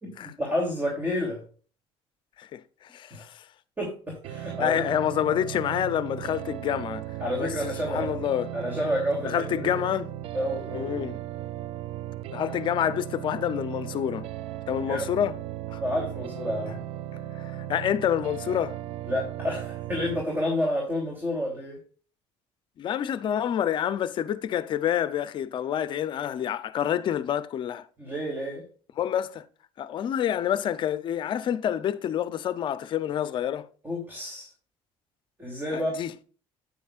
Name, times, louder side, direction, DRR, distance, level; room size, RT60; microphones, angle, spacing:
voice 1, 0.0-1.4 3.1-3.2 3.8-4.8 7.2-8.1 8.5-9.8 10.3-11.1 14.9-15.2 15.8-16.8 19.1-21.8 28.0-28.6 33.8-34.5 35.4-35.9, left 1 dB, 20° right, 2.9 m, -30 dB
voice 2, 2.4-3.4 4.6-7.0 7.4-8.5 9.2-10.1 10.7-11.2 12.3-14.3 14.7-15.4 15.7-15.8 17.4-18.8 22.8-27.9 29.0-29.5 29.8-33.7 35.7-36.1, left 10 dB, 50° left, 0.6 m, -28 dB
sound 1, 4.2-20.2, right 13 dB, 65° right, 0.5 m, -36 dB
9.2 x 8.7 x 2.5 m
cardioid pair, 125°, 11 cm